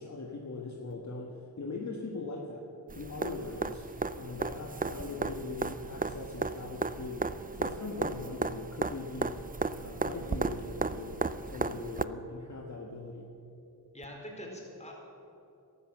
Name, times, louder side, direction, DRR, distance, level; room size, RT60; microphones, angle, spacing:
voice 1, 0.0-2.6 3.0-3.9 4.2-9.4 9.8-13.3, left 3 dB, 50° left, 0 dB, 1.6 m, -40 dB
sound 1, 2.9-12.0 14.0-14.1, right 4 dB, 25° right, 0.5 m, -35 dB
voice 2, 13.9-15.0, equal, 20° left, -1 dB, 4.5 m, -44 dB
13.5 x 13.0 x 7.3 m, 2.9 s
cardioid pair, 60°, 37 cm